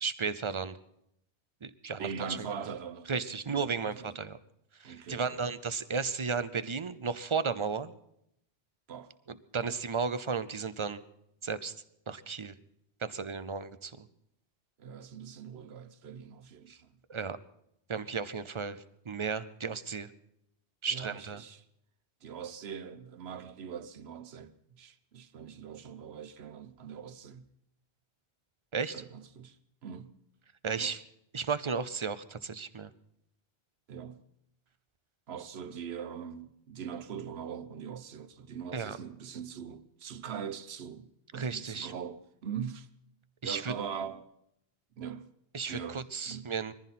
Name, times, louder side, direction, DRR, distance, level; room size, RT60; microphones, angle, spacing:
voice 1, 0.0-0.8 1.6-2.1 3.1-4.4 4.8-7.9 9.5-11.0 11.4-11.7 12.1-12.5 13.0-14.1 16.7-16.8 17.1-17.4 17.9-20.1 20.8-21.4 28.7-29.0 30.6-31.0 31.3-32.9 38.7-39.0 41.3-41.9 43.4-43.7 45.5-46.7, right 5 dB, 35° right, 0.6 m, -34 dB
voice 2, 2.0-4.2 4.8-5.5 8.9-9.2 9.6-9.8 14.8-16.9 20.9-21.6 22.2-27.4 28.9-30.1 30.8-30.9 33.9-34.2 35.3-42.9 43.4-44.3 45.0-45.3 45.7-46.5, right 7 dB, 75° right, 1.1 m, -42 dB
21.5 x 14.5 x 4.2 m
omnidirectional pair, 1.1 m